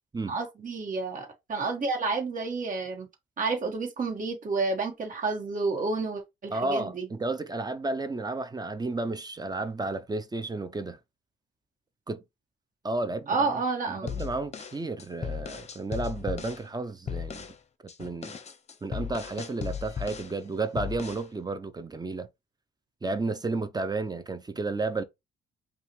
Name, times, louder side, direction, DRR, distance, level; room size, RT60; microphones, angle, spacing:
voice 1, 0.3-3.1 3.4-7.1 13.3-14.3, right 3 dB, 40° right, 1.5 m, -30 dB
voice 2, 6.5-11.0 12.1-12.2 12.8-13.6 13.9-17.5 17.8-18.4 18.8-22.3 23.0-25.0, right 3 dB, 20° right, 0.6 m, -32 dB
sound 1, 14.1-16.6 17.1-17.6 17.9-20.4 20.8-21.3, left 7 dB, 35° left, 0.7 m, -36 dB
5.5 x 2.5 x 3.1 m
cardioid pair, 90°, 20 cm